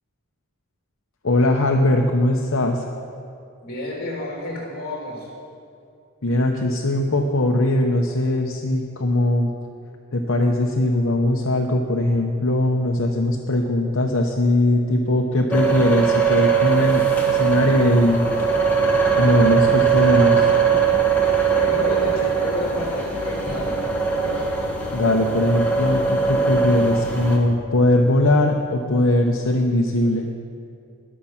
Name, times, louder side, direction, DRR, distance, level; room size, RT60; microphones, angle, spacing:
voice 1, 1.2-2.8 6.2-9.5 10.1-18.2 19.1-20.5 24.9-30.3, left 1 dB, 60° left, 2 dB, 0.8 m, -20 dB
voice 2, 3.6-5.3 21.4-23.8, left 2 dB, 40° left, -2 dB, 3.3 m, -30 dB
sound 1, 15.5-27.4, right 6 dB, 5° left, 1.4 m, -20 dB
21.5 x 7.3 x 5.8 m, 2.5 s
head